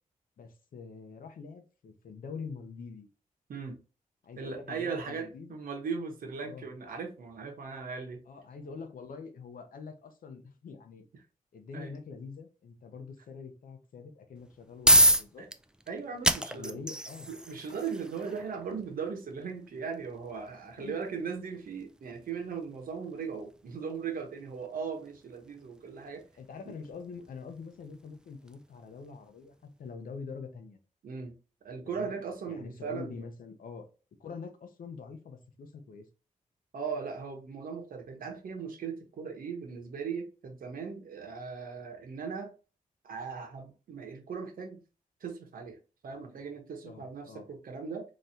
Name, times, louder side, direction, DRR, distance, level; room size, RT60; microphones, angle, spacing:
voice 1, 0.4-3.1 4.2-5.6 6.4-6.7 8.3-11.1 11.5-15.5 16.5-17.3 20.8-21.0 26.4-30.8 31.8-32.2 32.5-33.9 34.2-36.1 46.8-47.5, left 5 dB, 85° left, 0.8 m, -45 dB
voice 2, 4.4-8.2 11.7-11.9 15.4-15.5 15.9-16.8 17.3-26.2 26.7-26.8 31.0-31.3 31.6-33.2 36.7-42.5 43.0-44.8 45.2-45.8 46.0-48.0, right 5 dB, 90° right, 1.1 m, -38 dB
sound 1, 14.4-29.2, right 1 dB, 5° right, 0.3 m, -31 dB
4.0 x 3.1 x 2.7 m
wide cardioid pair, 130°, 14 cm